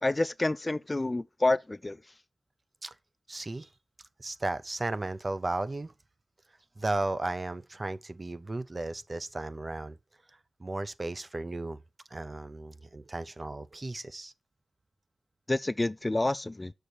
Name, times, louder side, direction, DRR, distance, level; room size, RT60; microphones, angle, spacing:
voice 1, 0.0-2.0 15.5-16.7, left 2 dB, 30° left, 0.4 m, -28 dB
voice 2, 3.3-3.7 4.2-5.9 6.8-10.0 10.6-11.8 12.1-14.3, right 2 dB, 40° right, 0.6 m, -35 dB
6.7 x 6.5 x 4.5 m
wide cardioid pair, 65°, 0 cm